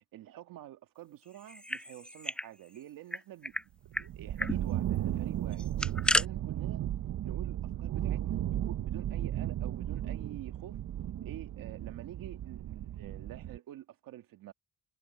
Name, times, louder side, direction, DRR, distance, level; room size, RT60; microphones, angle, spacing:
voice 1, 0.1-5.7 6.1-6.8 7.2-10.8 11.2-14.5, right 13 dB, 90° right, 2.0 m, -48 dB
sound 1, 1.4-2.5 2.8-2.9 3.1-3.6 3.9-4.1 4.4-4.6 5.5-6.3, left 1 dB, 5° left, 0.5 m, -32 dB
sound 2, 3.9-13.6, right 12 dB, 60° right, 0.8 m, -35 dB
cardioid pair, 100°, 33 cm